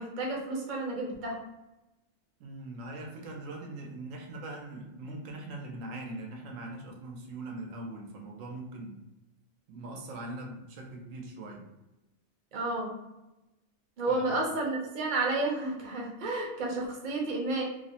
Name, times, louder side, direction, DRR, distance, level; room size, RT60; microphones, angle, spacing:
voice 1, 0.0-1.4 12.5-12.9 14.0-17.6, right 2 dB, 45° right, -1 dB, 0.7 m, -31 dB
voice 2, 2.4-9.0 9.7-11.7 14.1-14.3, right 2 dB, 80° right, 2 dB, 1.0 m, -41 dB
2.9 x 2.0 x 2.7 m, 1.0 s
omnidirectional pair, 1.4 m